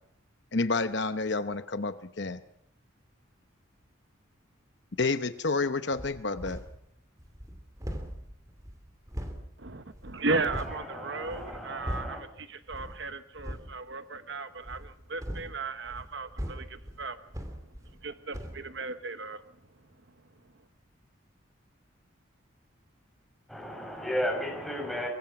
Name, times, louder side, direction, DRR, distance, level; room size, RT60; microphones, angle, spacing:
voice 1, 0.5-2.4 5.0-6.6, left 3 dB, 55° left, 11 dB, 0.9 m, -29 dB
sound 1, 5.9-6.8 7.2-10.8 11.2-12.3 12.7-13.0 13.3-13.7 14.6-18.1 18.3-18.6, equal, 15° right, 2.8 m, -40 dB
voice 2, 9.6-17.2 18.0-19.4, right 3 dB, 60° right, 10 dB, 1.0 m, -35 dB
voice 3, 10.4-12.2 23.5-25.1, equal, ahead, 0 dB, 6.9 m, -35 dB
25.5 x 23.5 x 5.9 m, 0.70 s
head